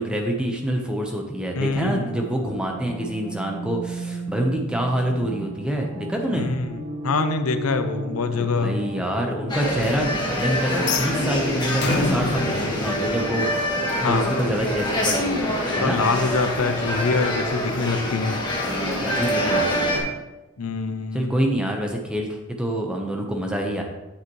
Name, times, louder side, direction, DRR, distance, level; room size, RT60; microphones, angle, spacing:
voice 1, 0.0-6.5 8.3-10.1 10.4-16.0 18.6-20.1 21.1-23.8, right 1 dB, 5° right, 1 dB, 1.0 m, -26 dB
voice 2, 1.6-2.1 6.3-8.8 14.0-14.3 15.7-18.4 20.6-21.3, left 4 dB, 90° left, 9 dB, 0.7 m, -25 dB
sound 1, 1.6-13.6, equal, 45° right, 2.6 m, -35 dB
sound 2, 9.5-20.0, left 1 dB, 20° left, 1.6 m, -25 dB
sound 3, 10.8-13.9, left 3 dB, 55° left, 0.7 m, -28 dB
8.7 x 7.7 x 3.2 m, 1.0 s
head